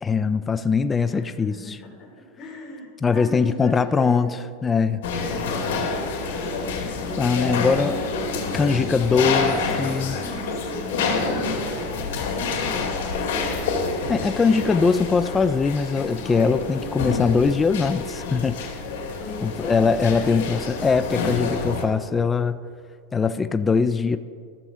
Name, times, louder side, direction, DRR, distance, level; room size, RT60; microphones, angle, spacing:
voice 1, 0.0-1.5 3.0-4.4 4.6-5.0 7.2-8.0 8.5-10.2 14.1-18.6 19.4-22.6 23.1-24.2, left 5 dB, 15° left, 11 dB, 0.3 m, -21 dB
voice 2, 1.0-4.4 5.1-5.5 6.2-6.5 7.4-13.5 19.2-20.6, left 2 dB, 30° left, -3 dB, 2.8 m, -38 dB
sound 1, 5.0-21.9, left 4 dB, 75° left, 2.3 m, -28 dB
14.5 x 7.0 x 3.7 m, 2.2 s
supercardioid pair, 145°, 0 cm